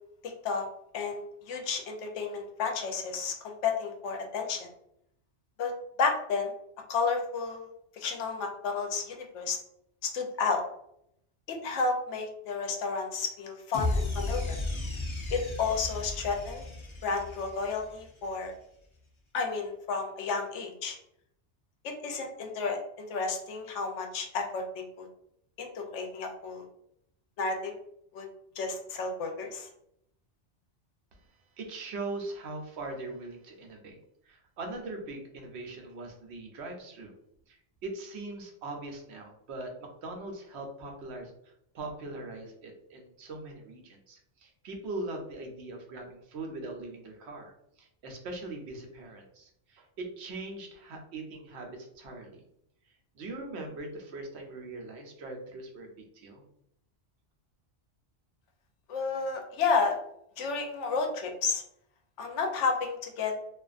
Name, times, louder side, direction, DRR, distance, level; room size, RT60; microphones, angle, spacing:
voice 1, 0.2-0.7 0.9-1.2 1.5-4.7 5.6-5.7 6.0-6.5 6.9-7.7 7.9-9.6 10.0-10.6 11.5-14.6 15.3-16.6 17.0-18.5 19.3-21.0 21.8-25.1 25.6-26.6 27.4-27.7 28.1-28.3 28.6-29.7 58.9-60.0 60.4-61.6 62.2-63.3, left 4 dB, 80° left, 3 dB, 0.9 m, -31 dB
sound 1, 13.7-18.1, left 2 dB, 45° left, 0.4 m, -34 dB
voice 2, 31.1-34.0 34.2-37.1 37.5-52.5 52.8-56.4, right 2 dB, 70° right, 2 dB, 0.9 m, -41 dB
2.5 x 2.4 x 2.3 m, 0.74 s
omnidirectional pair, 1.2 m